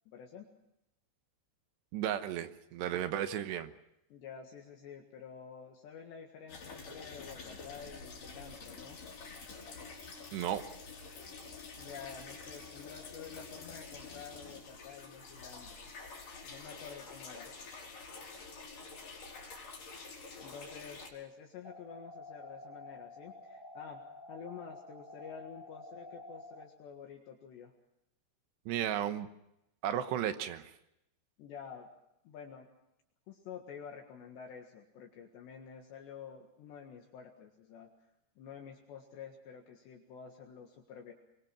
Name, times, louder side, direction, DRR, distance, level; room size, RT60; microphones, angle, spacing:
voice 1, 0.1-0.5 4.1-9.0 11.8-15.9 16.4-17.5 20.1-24.0 24.3-27.7 31.4-31.9 32.3-32.7 33.3-37.9 38.4-41.1, left 7 dB, 65° left, 2 dB, 3.6 m, -49 dB
voice 2, 1.9-3.7 10.3-10.6 28.7-29.3 29.8-30.7, right 10 dB, 70° right, 10 dB, 2.9 m, -34 dB
sound 1, 6.5-21.1, left 4 dB, 45° left, 5.6 m, -48 dB
sound 2, 21.6-26.6, left 2 dB, 10° left, 3.9 m, -50 dB
24.0 x 23.0 x 6.1 m, 0.84 s
omnidirectional pair, 5.8 m